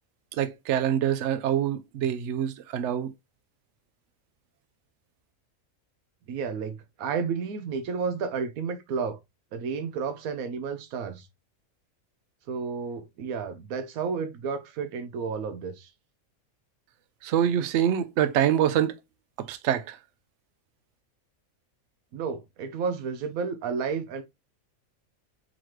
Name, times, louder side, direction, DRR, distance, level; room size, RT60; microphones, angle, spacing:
voice 1, 0.3-3.1 17.2-18.9 19.5-20.0, right 10 dB, 65° right, 0.8 m, -25 dB
voice 2, 6.3-9.2 9.5-11.3 12.5-15.9 22.1-24.2, right 5 dB, 85° right, 1.1 m, -31 dB
3.9 x 3.1 x 3.0 m
omnidirectional pair, 1.5 m